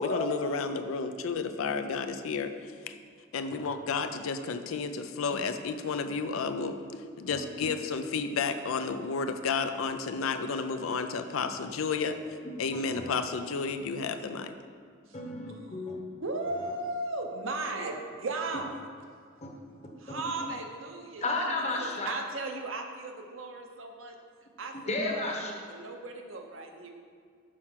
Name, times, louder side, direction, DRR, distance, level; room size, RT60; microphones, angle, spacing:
voice 1, 0.0-2.5 2.9-3.0 3.3-6.8 7.2-12.2 12.6-14.5, left 5 dB, 85° left, 9 dB, 0.4 m, -31 dB
voice 2, 15.1-16.1 19.4-19.5 21.2-22.1 24.7-25.5, left 2 dB, 35° left, 0 dB, 1.0 m, -32 dB
voice 3, 16.2-18.7 20.0-21.2 21.5-24.2 24.6-26.9, right 2 dB, 75° right, 3 dB, 0.8 m, -36 dB
6.3 x 4.4 x 5.7 m, 2.1 s
head